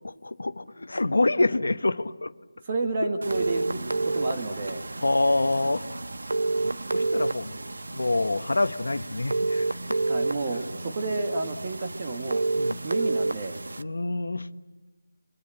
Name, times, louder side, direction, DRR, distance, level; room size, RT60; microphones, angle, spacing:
voice 1, 0.0-2.3 5.0-5.9 6.9-7.6 7.9-10.0 12.5-12.8 13.8-14.5, left 2 dB, 85° left, 13 dB, 1.0 m, -26 dB
voice 2, 2.7-4.8 10.1-12.4 12.8-13.8, right 3 dB, 25° right, 5 dB, 1.8 m, -31 dB
sound 1, 3.2-13.8, right 2 dB, 80° right, 1.1 m, -30 dB
28.5 x 24.0 x 7.7 m, 1.2 s
figure-of-eight pair, 175°, 0 cm